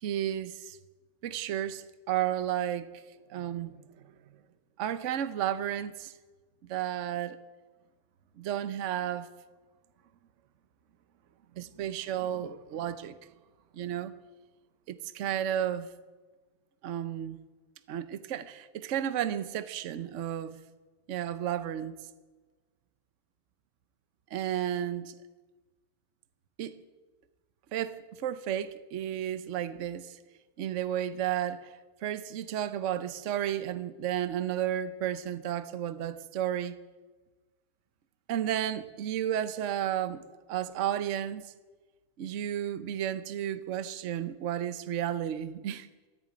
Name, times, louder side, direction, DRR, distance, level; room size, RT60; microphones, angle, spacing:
voice 1, 0.0-0.8 1.2-3.0 3.3-3.8 4.8-6.1 6.7-7.4 8.4-9.3 11.6-13.2 13.7-14.1 14.9-15.9 16.8-17.4 17.9-20.6 21.1-21.9 24.3-25.1 26.6-26.8 27.7-30.2 30.6-31.7 32.0-36.8 38.3-40.2 40.5-41.4 42.2-45.9, right 10 dB, 55° right, 1.0 m, -32 dB
14.0 x 10.5 x 9.4 m
omnidirectional pair, 1.7 m